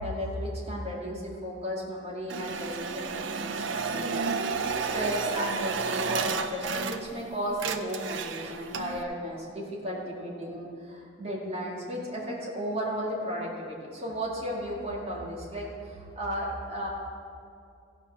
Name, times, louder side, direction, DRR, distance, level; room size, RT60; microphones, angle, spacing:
voice 1, 0.0-4.3 4.9-16.9, equal, 30° right, -4 dB, 2.2 m, -34 dB
sound 1, 2.3-7.2 7.5-9.0, right 5 dB, 65° right, 0.5 m, -32 dB
15.5 x 5.7 x 5.8 m, 2.4 s
head